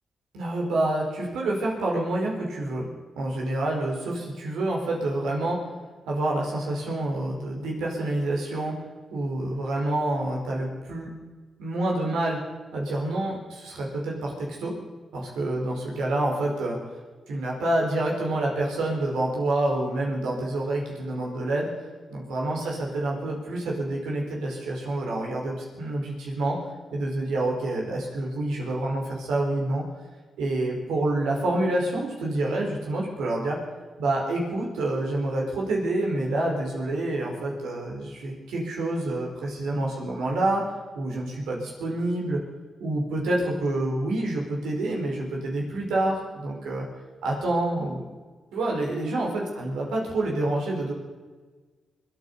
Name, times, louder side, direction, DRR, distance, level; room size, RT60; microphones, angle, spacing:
voice 1, 0.3-2.9 3.2-5.6 6.1-8.7 9.1-11.1 11.6-12.4 12.7-14.7 15.1-16.8 17.3-21.7 22.1-26.6 26.9-29.8 30.4-33.6 34.0-40.6 40.9-42.4 42.8-46.8 47.2-48.0 48.5-50.9, right 2 dB, 85° right, -2 dB, 4.8 m, -27 dB
24.5 x 9.5 x 5.7 m, 1.4 s
supercardioid pair, 50°, 0 cm